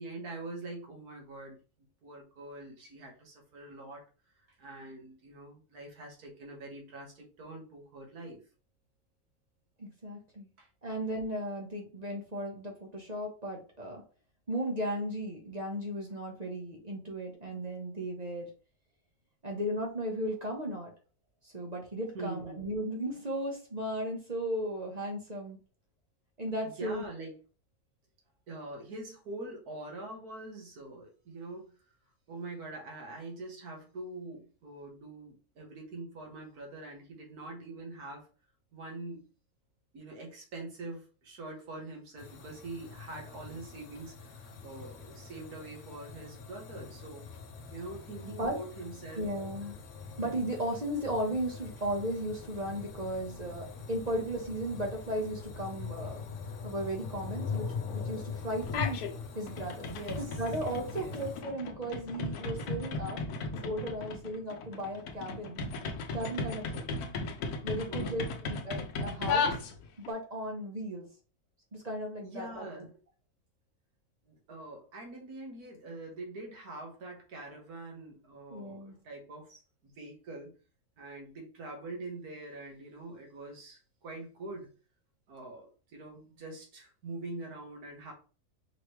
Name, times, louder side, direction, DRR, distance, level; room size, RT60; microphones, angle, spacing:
voice 1, 0.0-1.6 2.0-4.0 4.6-8.4 10.6-10.7 22.1-22.6 26.8-27.3 28.5-31.7 32.3-38.2 38.7-39.2 39.9-47.3 47.7-49.3 59.8-60.4 60.9-61.2 67.9-68.3 72.2-72.9 74.3-80.5 81.0-84.7 85.3-88.1, right 2 dB, 80° right, 0 dB, 1.9 m, -44 dB
voice 2, 9.8-10.5 10.8-14.0 14.5-18.5 19.4-20.9 21.4-25.6 26.4-27.0 48.2-48.6 49.1-49.8 50.2-56.2 56.6-57.7 57.9-59.1 59.3-59.9 60.2-63.2 63.5-65.6 66.1-66.9 67.6-69.6 70.1-71.1 71.7-72.9 78.5-78.9, right 1 dB, 30° right, 0 dB, 1.0 m, -36 dB
sound 1, 42.2-61.4, left 5 dB, 60° left, 0.9 m, -43 dB
sound 2, 58.6-59.1 59.5-70.1, left 4 dB, 80° left, 1.2 m, -36 dB
5.0 x 3.2 x 3.1 m, 0.36 s
omnidirectional pair, 1.6 m